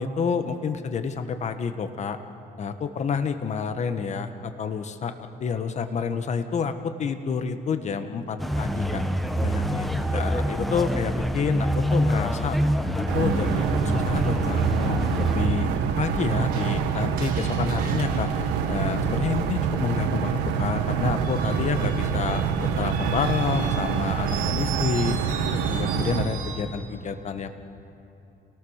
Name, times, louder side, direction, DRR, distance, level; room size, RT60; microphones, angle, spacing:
voice 1, 0.0-2.2 2.6-5.1 5.4-9.0 9.4-12.6 13.0-15.7 16.0-18.3 18.7-25.2 25.7-27.5, left 6 dB, 40° left, 8 dB, 1.4 m, -29 dB
sound 1, 8.4-15.4, equal, ahead, 1.2 m, -26 dB
sound 2, 13.1-26.3, right 7 dB, 90° right, 1.6 m, -26 dB
Screech, 16.5-19.4 21.0-26.8, right 6 dB, 60° right, 6.4 m, -39 dB
29.0 x 18.5 x 6.6 m, 2.8 s
cardioid pair, 110°, 17 cm